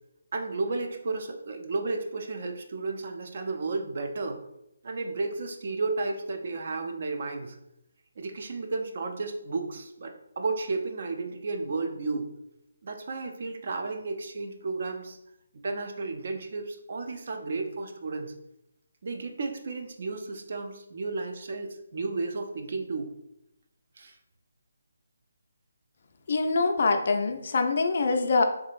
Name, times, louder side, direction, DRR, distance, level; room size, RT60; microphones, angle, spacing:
voice 1, 0.3-4.4 4.8-7.6 8.2-12.3 12.8-15.2 15.5-18.3 19.0-23.1 24.0-24.2, right 3 dB, 45° right, 4 dB, 0.4 m, -33 dB
voice 2, 26.3-28.4, left 3 dB, 45° left, 5 dB, 0.3 m, -24 dB
3.5 x 2.6 x 2.4 m, 0.83 s
figure-of-eight pair, 145°, 0 cm